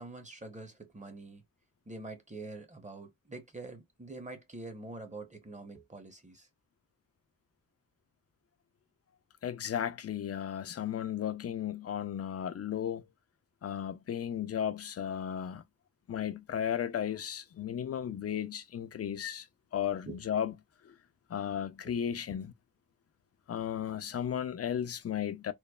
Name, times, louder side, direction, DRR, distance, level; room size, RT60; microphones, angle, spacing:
voice 1, 0.0-1.4 1.9-6.5 20.1-20.3 21.8-21.9, right 2 dB, 20° right, 0.8 m, -45 dB
voice 2, 9.4-13.0 13.6-15.6 16.1-19.5 19.7-20.5 20.8-20.9 21.3-22.5 23.5-25.5, left 9 dB, 50° left, 0.4 m, -34 dB
3.1 x 2.0 x 2.3 m
cardioid pair, 60°, 32 cm